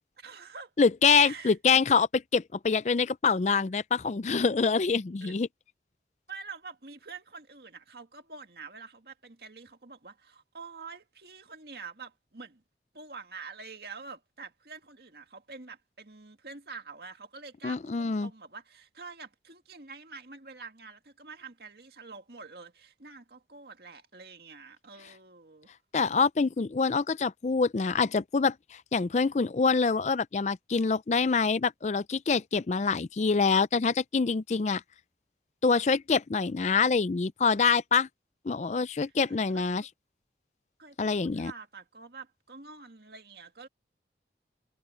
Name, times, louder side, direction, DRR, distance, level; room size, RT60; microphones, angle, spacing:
voice 1, 0.2-0.7 1.2-1.6 5.2-5.4 6.3-12.6 12.9-25.7 39.3-39.9 40.8-43.7, right 4 dB, 60° right, 2.1 m, -46 dB
voice 2, 0.8-5.5 17.6-18.3 25.9-34.8 35.6-38.1 38.5-39.8 41.0-41.5, left 5 dB, 40° left, 0.4 m, -25 dB
head